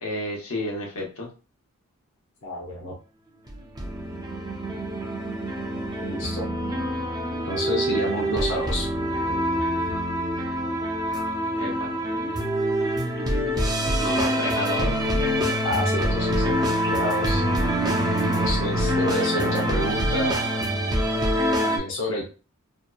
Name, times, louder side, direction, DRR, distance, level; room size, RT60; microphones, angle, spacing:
voice 1, 0.0-1.3 11.5-11.9 14.0-15.0, left 1 dB, 85° left, -1 dB, 0.9 m, -31 dB
voice 2, 2.4-2.9 6.0-6.5 7.5-8.9 14.2-14.7 15.6-16.5 16.9-17.4 18.3-20.3 21.6-22.3, left 1 dB, 60° left, -2 dB, 0.7 m, -29 dB
sound 1, 3.5-21.8, equal, 20° right, 0.4 m, -25 dB
2.8 x 2.2 x 2.2 m, 0.34 s
head